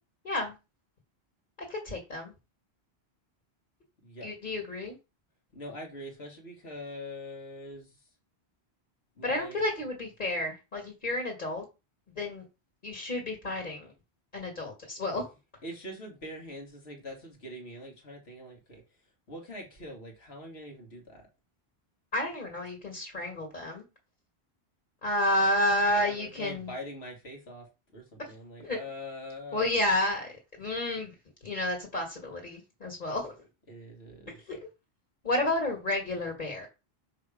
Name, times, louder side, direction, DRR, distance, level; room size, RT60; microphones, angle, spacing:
voice 1, 1.7-2.3 4.2-5.0 9.2-11.6 12.2-12.4 12.8-13.9 14.3-15.3 22.1-23.8 25.0-26.7 28.6-28.8 29.5-30.3 30.6-31.1 31.4-33.3 34.5-34.6 35.2-36.7, left 1 dB, 50° left, 1.8 m, -30 dB
voice 2, 5.5-7.9 9.2-9.6 15.6-18.8 19.3-21.2 26.0-27.7 27.9-29.7 33.7-34.4, left 1 dB, 75° left, 2.0 m, -43 dB
6.1 x 3.5 x 4.9 m
omnidirectional pair, 1.1 m